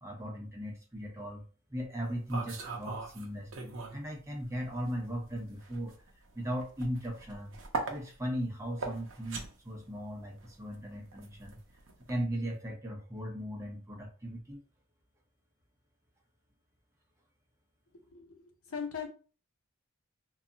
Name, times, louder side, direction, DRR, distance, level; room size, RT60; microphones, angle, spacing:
voice 1, 0.0-1.4 1.7-6.0 6.3-7.6 7.9-11.6 12.1-14.6, equal, 15° right, 0 dB, 0.6 m, -38 dB
sound 1, 2.0-4.1 4.4-12.2, right 3 dB, 60° right, 0.6 m, -41 dB
voice 2, 18.1-19.1, left 6 dB, 90° left, 4 dB, 0.7 m, -39 dB
2.3 x 2.0 x 3.8 m, 0.36 s
head